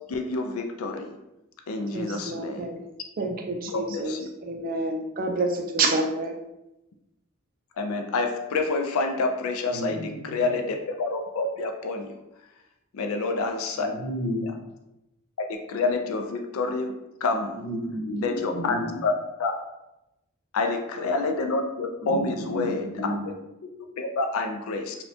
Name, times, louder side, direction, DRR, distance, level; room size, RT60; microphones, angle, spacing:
voice 1, 0.1-1.2 1.7-2.7 3.7-4.2 7.8-12.1 12.9-13.9 14.4-14.5 15.5-16.9 17.2-17.7 18.2-19.1 19.4-19.5 20.5-22.9 24.0-25.0, left 3 dB, 75° left, 4 dB, 0.4 m, -28 dB
voice 2, 1.9-2.8 3.2-6.3, right 2 dB, 40° right, 3 dB, 0.4 m, -28 dB
voice 3, 9.7-10.5 13.7-14.4 17.5-19.0 22.0-23.3, equal, 50° left, -2 dB, 0.9 m, -32 dB
4.1 x 2.2 x 2.7 m, 0.92 s
head